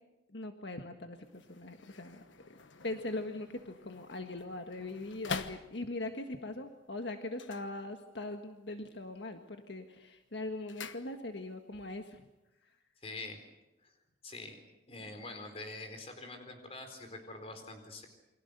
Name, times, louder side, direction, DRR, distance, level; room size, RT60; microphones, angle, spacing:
voice 1, 0.3-2.2 2.8-12.2 12.6-12.7, left 2 dB, 70° left, 5 dB, 1.6 m, -41 dB
sound 1, 1.2-6.2 7.3-8.4 8.7-9.2 9.5-11.6 11.9-12.0, left 5 dB, 85° left, 1.3 m, -46 dB
voice 2, 13.0-13.4 13.8-14.0 14.2-14.6 14.9-18.1, left 2 dB, 30° left, 6 dB, 4.3 m, -45 dB
29.0 x 24.0 x 6.8 m, 1.0 s
head